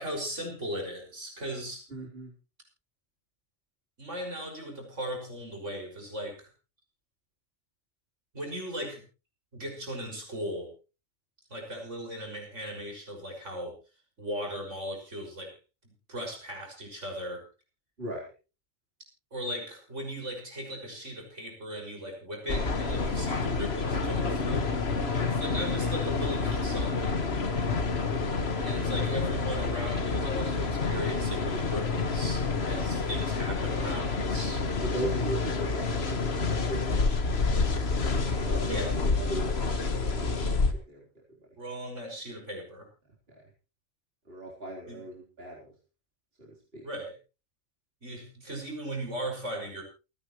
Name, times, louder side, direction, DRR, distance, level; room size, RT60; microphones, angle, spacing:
voice 1, 0.0-1.8 4.0-6.5 8.3-9.0 9.5-10.7 11.5-13.8 14.2-15.5 15.8-17.4 19.3-27.2 28.6-34.7 38.5-39.0 41.6-42.9 44.9-45.0 46.8-47.1 48.0-49.8, equal, 80° right, 2 dB, 6.4 m, -38 dB
voice 2, 1.9-2.3 18.0-18.2 25.0-25.4 27.7-28.3 34.8-37.3 37.6-37.8 38.4-41.0 43.3-43.4 44.3-45.7 46.4-46.9, right 1 dB, 55° right, -3 dB, 4.1 m, -39 dB
sound 1, 22.5-40.7, left 4 dB, 60° left, 1.8 m, -28 dB
28.5 x 10.0 x 3.1 m, 0.32 s
omnidirectional pair, 1.2 m